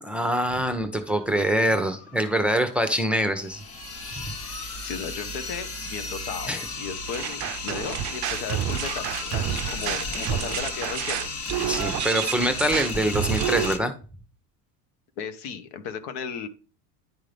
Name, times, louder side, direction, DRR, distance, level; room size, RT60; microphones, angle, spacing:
voice 1, 0.0-3.6 6.5-6.6 11.7-13.9, equal, 5° right, 7 dB, 0.8 m, -24 dB
sound 1, 1.0-13.5, left 3 dB, 90° left, 2.0 m, -47 dB
sound 2, 3.4-13.8, left 3 dB, 30° left, 1.1 m, -34 dB
voice 2, 4.8-11.3 15.2-16.5, left 6 dB, 65° left, 10 dB, 1.0 m, -35 dB
sound 3, 7.1-13.7, right 13 dB, 40° right, 0.5 m, -29 dB
10.5 x 3.7 x 3.3 m, 0.37 s
supercardioid pair, 90°, 46 cm